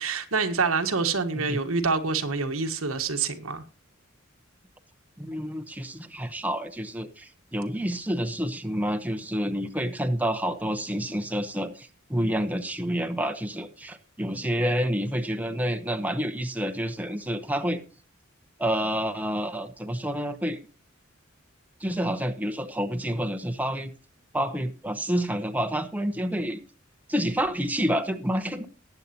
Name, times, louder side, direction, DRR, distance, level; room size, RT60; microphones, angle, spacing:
voice 1, 0.0-3.6, right 4 dB, 90° right, 1.4 m, -26 dB
voice 2, 5.2-17.8 18.6-20.6 21.8-23.9 24.3-26.6 27.1-28.6, equal, 10° right, 0.9 m, -28 dB
19.0 x 8.2 x 2.8 m
head